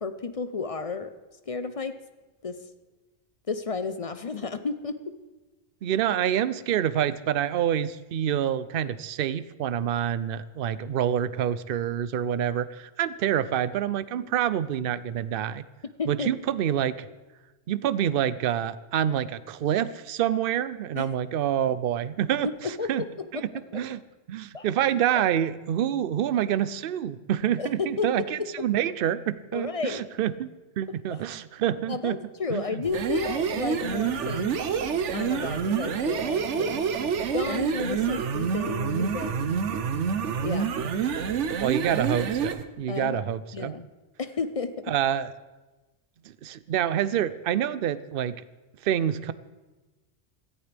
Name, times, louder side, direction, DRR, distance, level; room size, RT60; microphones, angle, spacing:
voice 1, 0.0-1.1 1.5-2.0 2.4-2.6 3.5-5.1 13.3-13.4 16.0-16.3 21.0-21.1 22.4-23.8 24.5-24.7 25.1-25.2 27.6-28.1 28.4-28.5 29.5-30.0 31.1-31.2 31.9-34.5 35.1-36.9 37.3-39.6 40.4-40.7 42.9-43.2 43.5-43.9 44.2-44.8, left 4 dB, 40° left, 10 dB, 0.5 m, -32 dB
voice 2, 5.8-15.6 16.1-17.1 17.7-23.0 23.4-24.0 24.3-30.5 30.8-32.2 32.5-32.8 41.6-43.7 44.9-45.3 46.3-48.4 48.8-49.3, right 10 dB, 60° right, 15 dB, 0.7 m, -27 dB
sound 1, 32.8-42.6, right 6 dB, 90° right, 1.1 m, -27 dB
17.0 x 14.0 x 3.4 m, 1.2 s
omnidirectional pair, 1.2 m